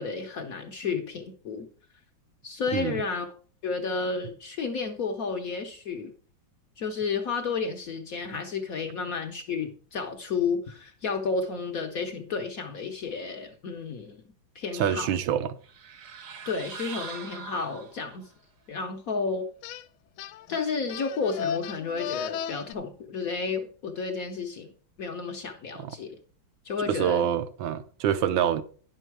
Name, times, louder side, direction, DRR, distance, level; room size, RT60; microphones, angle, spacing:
voice 1, 0.0-1.7 2.4-3.3 3.6-6.1 6.8-14.2 14.5-15.1 16.5-18.3 18.7-19.5 20.5-24.7 25.0-26.2 26.6-27.3, left 4 dB, 60° left, 1.0 m, -31 dB
voice 2, 14.7-15.6 25.8-25.9 26.9-28.6, right 9 dB, 75° right, 1.4 m, -26 dB
sound 1, 15.6-18.3, right 6 dB, 55° right, 1.0 m, -42 dB
sound 2, 19.6-19.8 20.2-22.7, left 8 dB, 80° left, 1.4 m, -34 dB
9.9 x 6.4 x 4.6 m
omnidirectional pair, 2.2 m